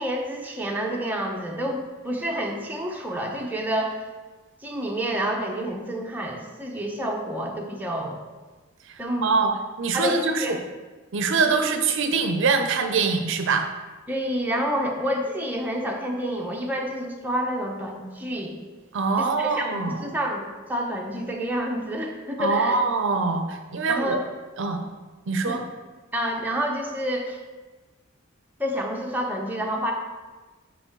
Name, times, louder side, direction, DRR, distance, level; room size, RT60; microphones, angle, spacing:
voice 1, 0.0-4.0 4.6-8.2 9.0-9.4 9.9-10.6 14.1-18.6 19.2-22.8 23.9-24.2 25.4-25.6 26.1-27.4 28.6-29.9, equal, 10° right, 0 dB, 0.7 m, -28 dB
voice 2, 9.2-9.5 9.8-10.6 11.1-13.7 18.9-20.0 22.4-24.2 24.6-24.8 25.3-25.6, right 4 dB, 65° right, 6 dB, 0.6 m, -23 dB
6.8 x 4.3 x 4.5 m, 1.3 s
head